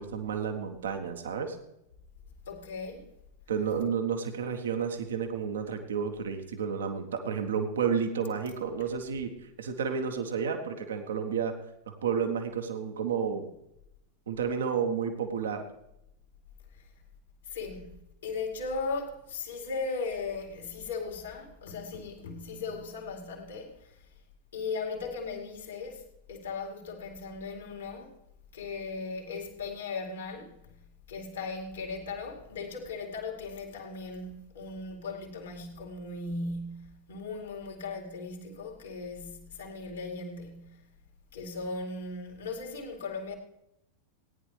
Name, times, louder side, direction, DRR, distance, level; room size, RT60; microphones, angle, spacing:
voice 1, 0.0-1.6 3.5-9.3 9.6-11.5 11.9-13.5 14.3-15.6, right 6 dB, 65° right, 1.1 m, -31 dB
voice 2, 2.5-3.1 16.7-16.8 17.4-17.9 18.2-24.1 24.5-28.1 28.5-40.8 41.3-43.3, left 4 dB, 65° left, 2.2 m, -38 dB
17.5 x 9.9 x 3.3 m
figure-of-eight pair, 90°, 0 cm